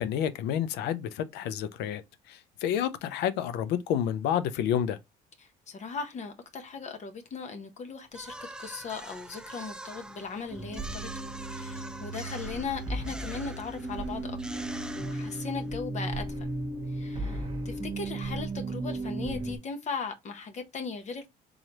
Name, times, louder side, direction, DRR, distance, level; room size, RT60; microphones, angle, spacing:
voice 1, 0.0-2.0 2.3-5.0, left 9 dB, 90° left, 0.6 m, -29 dB
voice 2, 5.4-11.1 11.5-14.6 14.9-16.5 16.9-21.3, left 5 dB, 45° left, 0.8 m, -38 dB
sound 1, 8.1-15.8, right 1 dB, 5° right, 0.4 m, -45 dB
sound 2, 10.5-19.6, right 2 dB, 30° right, 1.2 m, -35 dB
3.9 x 3.2 x 2.9 m
cardioid pair, 110°, 17 cm